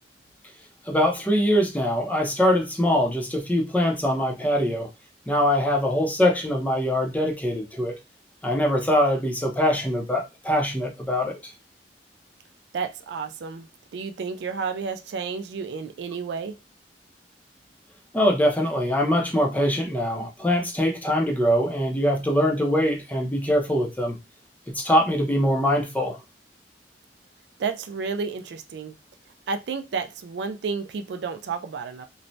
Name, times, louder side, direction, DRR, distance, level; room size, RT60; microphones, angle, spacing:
voice 1, 0.9-4.9 5.3-7.9 8.4-11.5 18.1-24.2 24.7-26.2, equal, 10° left, 0.5 m, -23 dB
voice 2, 12.7-13.7 13.9-16.5 27.6-29.0 29.5-32.1, right 5 dB, 75° right, 0.4 m, -31 dB
3.1 x 2.0 x 2.6 m
head